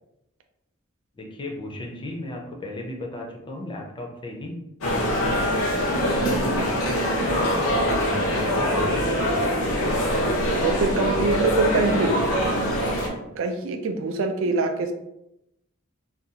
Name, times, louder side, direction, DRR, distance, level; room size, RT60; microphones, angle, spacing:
voice 1, 1.2-4.6 4.9-9.7 11.2-11.4, left 1 dB, 25° left, 0 dB, 0.5 m, -35 dB
sound 1, 4.8-13.1, equal, 75° left, 0.7 m, -23 dB
voice 2, 10.6-12.2 13.3-14.9, right 3 dB, 65° right, 6 dB, 0.4 m, -24 dB
2.5 x 2.3 x 2.7 m, 0.86 s
head